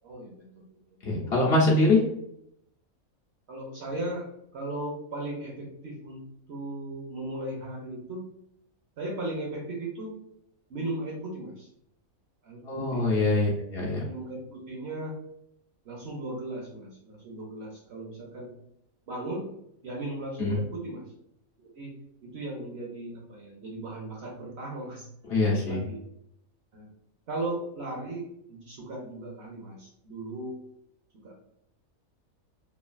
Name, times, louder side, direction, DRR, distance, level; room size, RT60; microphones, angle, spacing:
voice 1, 0.0-0.8 1.2-1.5 3.5-8.3 9.0-10.2 10.7-11.7 12.4-13.1 14.0-15.2 15.8-18.5 19.1-19.5 19.8-21.1 21.6-25.1 25.3-26.0 26.7-26.9 27.3-30.6 31.2-31.4, right 1 dB, 55° right, -2 dB, 0.9 m, -37 dB
voice 2, 1.0-2.0 12.7-14.0 20.4-20.6 25.3-25.8, left 2 dB, 55° left, -4 dB, 0.8 m, -23 dB
3.2 x 2.3 x 2.3 m, 0.75 s
omnidirectional pair, 1.5 m